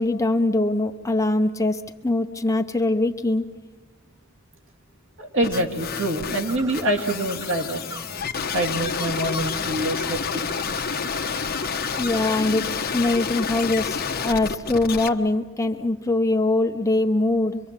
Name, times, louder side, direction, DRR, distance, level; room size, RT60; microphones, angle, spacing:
voice 1, 0.0-3.4 12.0-17.6, left 2 dB, 15° left, 6 dB, 0.8 m, -22 dB
voice 2, 5.2-7.8 8.5-10.4, right 1 dB, 65° right, 1 dB, 2.2 m, -25 dB
sound 1, 5.4-15.1, left 6 dB, 50° left, 1.2 m, -29 dB
Bird, 6.5-12.6, right 2 dB, 15° right, 1.7 m, -40 dB
25.5 x 23.5 x 7.4 m, 1.3 s
head